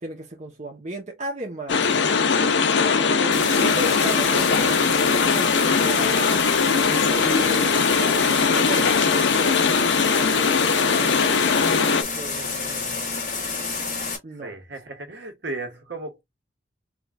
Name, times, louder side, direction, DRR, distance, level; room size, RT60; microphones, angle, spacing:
voice 1, 0.0-1.9 3.1-6.3 7.1-9.7 10.1-13.1 14.2-14.5, right 1 dB, 40° right, 1.1 m, -35 dB
sound 1, 1.7-12.0, left 5 dB, 75° left, 0.7 m, -20 dB
sound 2, 3.3-14.2, left 4 dB, 45° left, 2.4 m, -29 dB
voice 2, 14.4-16.2, right 2 dB, 65° right, 1.7 m, -35 dB
4.9 x 3.3 x 2.5 m
head